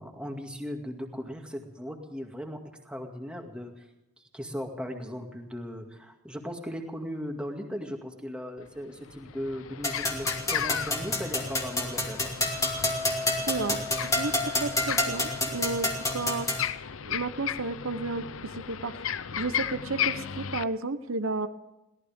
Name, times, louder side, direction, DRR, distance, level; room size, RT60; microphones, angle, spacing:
voice 1, 0.0-3.9 4.2-12.3, equal, 5° right, 2 dB, 2.1 m, -38 dB
sound 1, 8.6-8.7 9.1-20.6, left 8 dB, 70° left, 0.6 m, -35 dB
sound 2, 9.8-16.7, left 2 dB, 15° left, 2.4 m, -29 dB
voice 2, 13.5-13.8 14.2-16.5 17.0-19.0 19.4-21.5, right 3 dB, 75° right, 10 dB, 0.9 m, -32 dB
22.5 x 17.5 x 3.6 m, 0.94 s
head